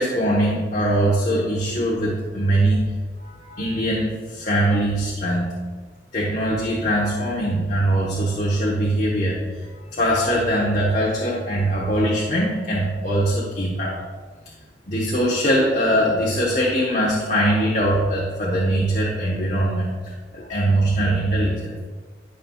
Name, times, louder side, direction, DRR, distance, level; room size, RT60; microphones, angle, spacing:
voice 1, 0.0-2.8 3.2-5.5 6.1-14.0 14.5-14.6 14.9-21.8, right 1 dB, 40° left, -4 dB, 1.2 m, -22 dB
12.0 x 5.7 x 2.4 m, 1.5 s
head